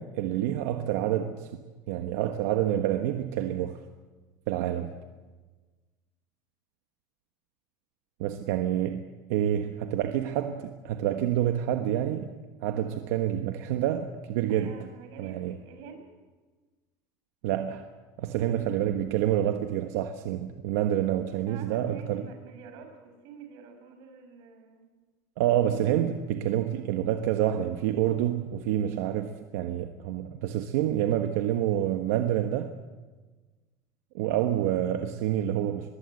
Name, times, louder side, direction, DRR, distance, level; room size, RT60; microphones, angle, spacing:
voice 1, 0.0-1.5 1.9-3.8 4.5-4.9 8.2-9.0 9.3-12.3 12.6-14.7 15.2-15.6 17.4-17.8 18.2-22.2 25.4-32.7 34.1-35.9, right 11 dB, 90° right, 6 dB, 1.3 m, -28 dB
voice 2, 14.5-16.1 18.2-18.6 20.9-24.9 27.9-28.4, right 6 dB, 65° right, 5 dB, 6.0 m, -48 dB
23.5 x 21.5 x 7.9 m, 1.3 s
cardioid pair, 150°, 8 cm